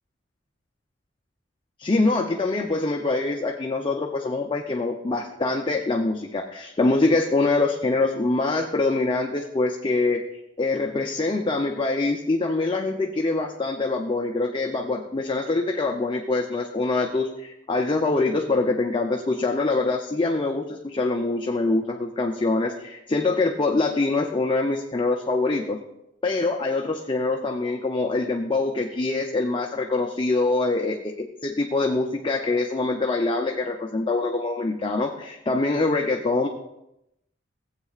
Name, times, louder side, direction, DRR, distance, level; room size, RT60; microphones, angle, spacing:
voice 1, 1.8-10.2 10.6-25.8 26.2-36.5, left 3 dB, 25° left, 2 dB, 0.6 m, -24 dB
16.0 x 8.1 x 2.4 m, 0.86 s
head